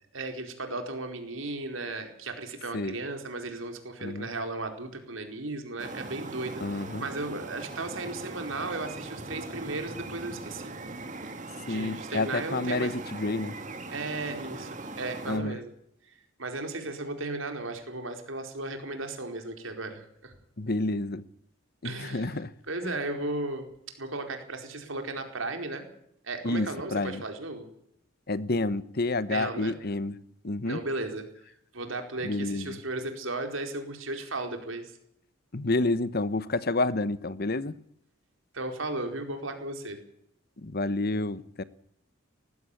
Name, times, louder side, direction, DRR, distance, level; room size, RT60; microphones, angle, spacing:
voice 1, 0.1-10.7 11.7-12.9 13.9-15.7 16.1-16.2 16.4-20.3 21.8-22.4 22.7-23.7 24.0-25.8 26.2-27.7 29.3-29.7 30.6-34.9 38.5-40.0, right 2 dB, 75° right, 5 dB, 4.5 m, -35 dB
sound 1, 5.8-15.4, right 2 dB, 40° right, 2.4 m, -40 dB
voice 2, 6.6-7.0 11.7-13.6 15.3-15.6 20.6-21.2 21.8-22.5 22.8-22.9 26.4-27.2 28.3-30.1 30.4-30.8 32.2-32.8 35.5-37.7 40.6-41.6, left 2 dB, 50° left, 16 dB, 1.1 m, -29 dB
19.5 x 15.5 x 8.6 m, 0.72 s
head